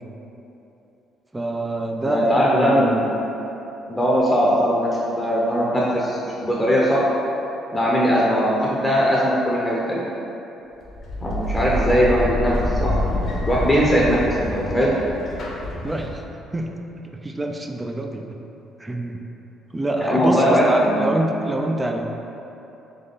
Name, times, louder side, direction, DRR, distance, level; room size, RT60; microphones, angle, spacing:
voice 1, 1.3-3.0 15.8-16.2 16.5-16.6 17.2-18.4 18.8-19.2 19.7-22.1, right 1 dB, 20° right, 2 dB, 0.4 m, -25 dB
voice 2, 2.0-3.2 3.9-7.0 7.7-10.0 11.2-13.0 13.4-14.9 20.0-21.2, equal, 15° left, -5 dB, 0.7 m, -20 dB
sound 1, 10.8-16.5, left 1 dB, 55° left, 0.8 m, -27 dB
3.4 x 3.2 x 4.0 m, 3.0 s
supercardioid pair, 80°, 0 cm